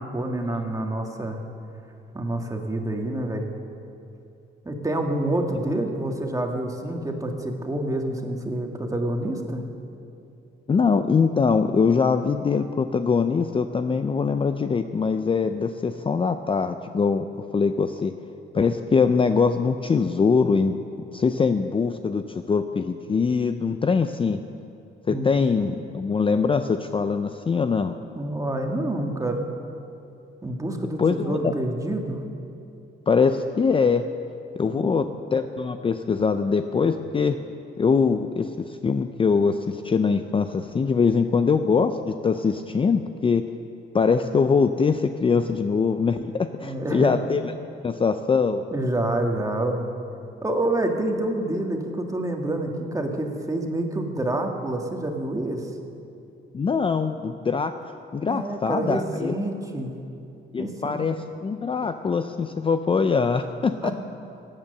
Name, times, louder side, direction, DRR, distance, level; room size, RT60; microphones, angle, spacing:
voice 1, 0.0-1.4 2.1-3.5 4.6-9.6 25.1-25.3 28.1-29.5 30.4-32.2 34.6-35.1 46.6-47.1 48.7-49.8 50.4-55.7 58.3-60.0 60.6-61.0 63.8-63.9, right 1 dB, 15° right, 3 dB, 1.7 m, -27 dB
voice 2, 10.7-17.2 17.5-18.1 18.5-20.8 21.1-24.4 25.1-27.9 31.0-31.5 33.1-34.0 34.6-37.4 37.8-43.4 43.9-47.5 47.8-48.6 56.5-57.7 58.1-59.3 60.5-63.9, left 5 dB, 25° left, 9 dB, 0.5 m, -23 dB
16.5 x 9.0 x 6.7 m, 2.7 s
cardioid pair, 90°, 20 cm